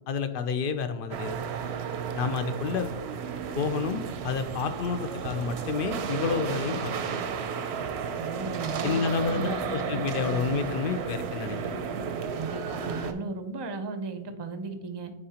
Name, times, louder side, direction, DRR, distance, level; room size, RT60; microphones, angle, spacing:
voice 1, 0.1-1.4 2.2-2.9 3.5-7.1 8.8-11.6, left 5 dB, 65° left, 10 dB, 0.7 m, -29 dB
sound 1, 1.1-13.1, right 6 dB, 85° right, 0.9 m, -33 dB
voice 2, 8.2-10.5 12.3-15.1, right 3 dB, 35° right, 8 dB, 0.5 m, -36 dB
9.4 x 3.8 x 2.8 m, 0.97 s
omnidirectional pair, 1.1 m